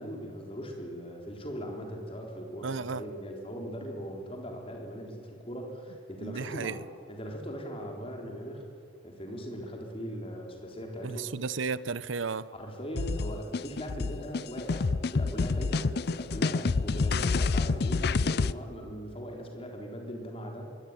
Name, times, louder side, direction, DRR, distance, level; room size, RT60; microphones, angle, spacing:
voice 1, 0.0-6.8 7.1-8.6 9.0-11.3 12.5-20.7, equal, 30° left, 4.0 m, -39 dB
voice 2, 2.6-3.0 6.2-6.8 11.0-12.5, right 5 dB, 80° right, 0.7 m, -33 dB
sound 1, 13.0-18.5, left 4 dB, 55° left, 0.5 m, -28 dB
23.0 x 18.0 x 9.9 m
head